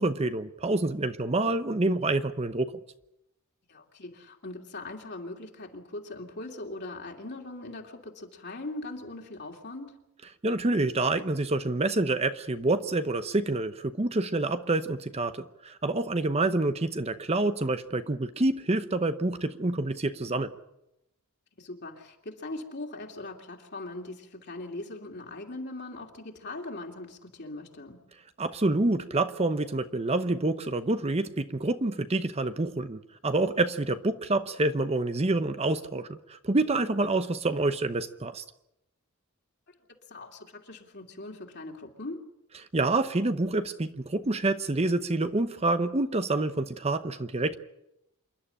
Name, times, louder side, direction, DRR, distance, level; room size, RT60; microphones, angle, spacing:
voice 1, 0.0-2.7 10.4-20.5 28.4-38.4 42.7-47.6, right 2 dB, 30° right, 10 dB, 0.8 m, -27 dB
voice 2, 3.7-10.0 21.6-28.0 39.7-39.8 40.1-42.2, left 2 dB, 50° left, 2 dB, 2.8 m, -40 dB
27.5 x 11.5 x 10.0 m, 0.87 s
head